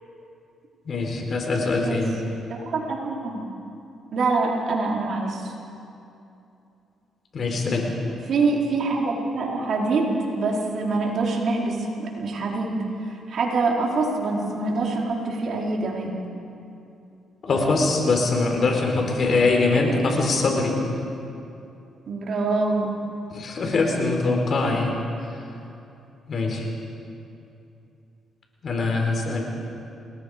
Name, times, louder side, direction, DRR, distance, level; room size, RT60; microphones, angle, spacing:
voice 1, 0.9-2.1 7.3-7.9 17.4-20.8 23.3-25.0 26.3-26.6 28.6-29.4, left 3 dB, 50° left, 2 dB, 4.3 m, -22 dB
voice 2, 2.5-3.4 4.1-5.5 8.3-12.8 13.1-16.2 22.1-22.9, right 3 dB, 60° right, -2 dB, 4.0 m, -25 dB
28.0 x 20.0 x 5.1 m, 2.7 s
cardioid pair, 95°, 0 cm